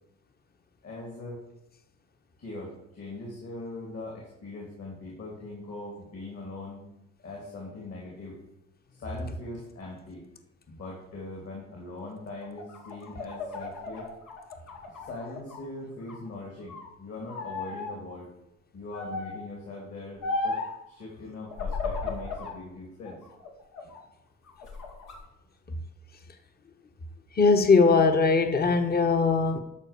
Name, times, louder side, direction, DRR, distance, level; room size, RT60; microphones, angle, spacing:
voice 1, 0.8-1.4 2.4-6.8 7.2-8.4 8.9-10.3 10.7-14.1 14.9-18.3 18.7-20.6 20.9-23.2, left 2 dB, 55° left, -2 dB, 2.9 m, -41 dB
sound 1, 12.4-15.6 16.0-16.9 17.3-17.9 18.9-19.5 20.2-20.8 21.5-22.6 23.0-24.0 24.5-25.2, left 3 dB, 90° left, 2.4 m, -35 dB
voice 2, 27.4-29.6, left 4 dB, 30° left, 7 dB, 1.0 m, -20 dB
12.0 x 4.5 x 6.8 m, 0.87 s
cardioid pair, 90°, 30 cm